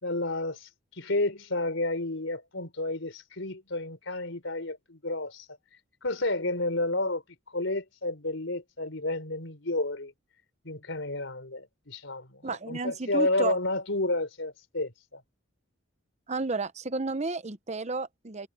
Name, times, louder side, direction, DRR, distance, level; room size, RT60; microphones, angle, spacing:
voice 1, 0.0-5.5 6.0-7.2 7.5-10.1 10.6-15.2, left 2 dB, 70° left, 4.0 m, -31 dB
voice 2, 12.4-13.6 16.3-18.5, right 3 dB, 35° right, 0.9 m, -32 dB
head